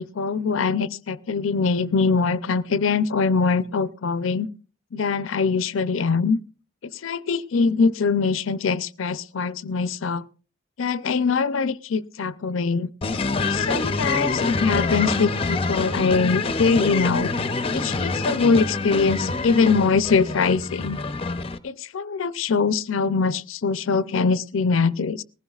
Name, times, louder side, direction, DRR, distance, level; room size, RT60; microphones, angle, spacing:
voice 1, 0.0-4.5 4.9-6.4 7.0-10.2 10.8-12.9 13.5-17.3 17.7-21.0 21.6-25.2, left 4 dB, 85° left, 0.5 m, -23 dB
sound 1, 13.0-21.6, left 3 dB, 30° left, 0.6 m, -26 dB
19.5 x 15.5 x 2.4 m
head